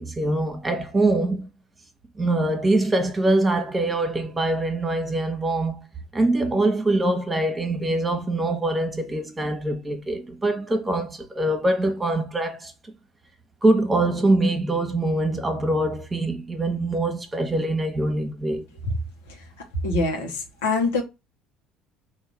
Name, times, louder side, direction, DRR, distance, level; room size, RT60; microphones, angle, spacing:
voice 1, 0.0-1.5 2.2-5.8 6.1-12.7 13.6-18.6, right 2 dB, 20° right, 1.2 m, -23 dB
voice 2, 19.8-21.0, left 3 dB, 80° left, 1.2 m, -24 dB
3.7 x 2.7 x 4.7 m
hypercardioid pair, 65°, 0 cm